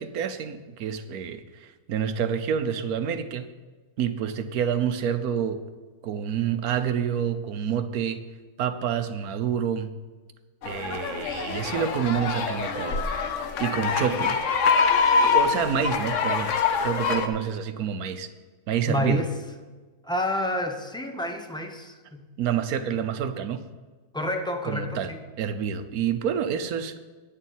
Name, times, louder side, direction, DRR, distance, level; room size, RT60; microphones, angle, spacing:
voice 1, 0.0-3.5 4.0-5.6 6.0-8.2 8.6-9.9 10.6-13.1 13.3-14.4 15.2-16.5 16.8-18.3 18.7-19.2 22.4-23.6 24.6-25.1 25.4-27.0, right 8 dB, 75° right, 10 dB, 1.2 m, -28 dB
sound 1, 10.6-17.3, left 5 dB, 60° left, 1.1 m, -25 dB
voice 2, 18.9-19.3 20.0-22.3 24.1-25.2, left 1 dB, 5° left, 4 dB, 0.6 m, -28 dB
9.8 x 6.8 x 7.2 m, 1.3 s
omnidirectional pair, 1.6 m